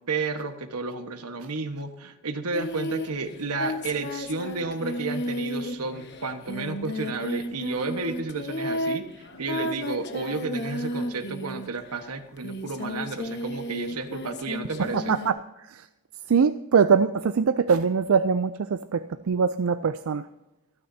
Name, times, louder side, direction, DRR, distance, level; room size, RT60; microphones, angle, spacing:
voice 1, 0.0-15.2, right 3 dB, 85° right, 7 dB, 1.4 m, -32 dB
Singing, 2.5-11.9 12.4-15.3, left 1 dB, 50° left, 1.2 m, -33 dB
voice 2, 14.9-15.4 15.7-15.8 16.3-20.3, right 6 dB, 65° right, 11 dB, 0.4 m, -22 dB
25.5 x 9.7 x 2.8 m, 0.99 s
head